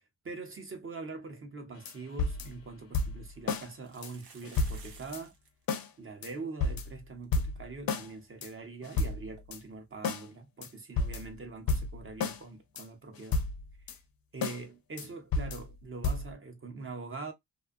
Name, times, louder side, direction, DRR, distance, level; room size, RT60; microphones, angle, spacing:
voice 1, 0.0-5.3 6.0-13.4 13.9-14.0 14.3-17.3, right 3 dB, 30° right, 0.7 m, -43 dB
sound 1, 1.9-2.0 2.2-2.6 2.9-3.7 4.0-4.1 4.4-5.2 5.7-5.9 6.2-6.3 6.6-7.0 7.3-8.1 8.4-8.5 8.8-9.6 10.0-10.3 10.6-10.7 11.0-11.4 11.7-12.4 12.8-12.9 13.2-14.0 14.4-14.6 15.0-15.1 15.3-15.7 16.0-16.3, left 3 dB, 55° left, 0.5 m, -32 dB
sound 2, 2.5-2.6 3.7-5.5 5.7-5.8 6.0-6.3 6.8-6.9 7.2-7.3 9.4-9.5, right 5 dB, 65° right, 0.9 m, -54 dB
2.6 x 2.3 x 2.3 m
wide cardioid pair, 150°, 43 cm